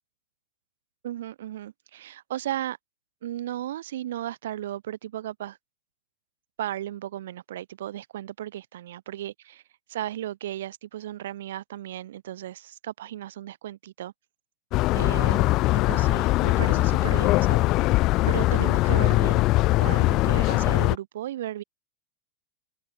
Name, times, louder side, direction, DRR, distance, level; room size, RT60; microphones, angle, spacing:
voice 1, 1.0-2.8 3.2-5.6 6.6-9.6 9.9-14.1 14.9-19.5 19.8-21.6, right 12 dB, 60° right, 3.2 m, -35 dB
sound 1, 14.7-21.0, left 19 dB, 40° left, 0.3 m, -21 dB
open air
figure-of-eight pair, 90°, 0 cm